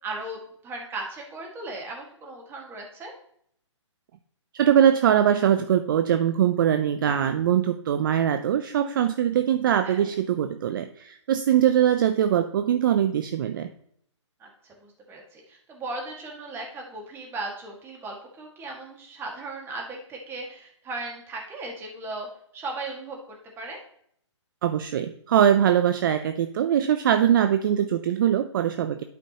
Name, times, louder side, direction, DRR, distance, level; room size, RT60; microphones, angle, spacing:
voice 1, 0.0-3.1 9.8-10.1 14.4-14.5 14.8-22.3 22.5-23.8, right 2 dB, 15° right, 0 dB, 1.7 m, -37 dB
voice 2, 4.5-13.7 24.6-29.0, right 10 dB, 45° right, 9 dB, 0.5 m, -22 dB
11.5 x 5.0 x 2.9 m, 0.66 s
hypercardioid pair, 140°, 16 cm